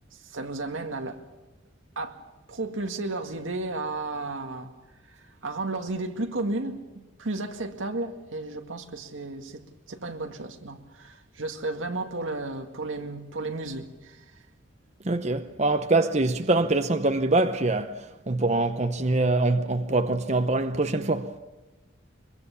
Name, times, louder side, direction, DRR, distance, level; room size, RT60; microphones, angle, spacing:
voice 1, 0.1-1.2 2.0-2.2 2.5-4.7 5.1-9.6 9.9-14.2, right 2 dB, 85° right, 2.0 m, -33 dB
voice 2, 15.0-21.3, right 2 dB, 35° right, 0.8 m, -24 dB
23.5 x 23.0 x 7.1 m
head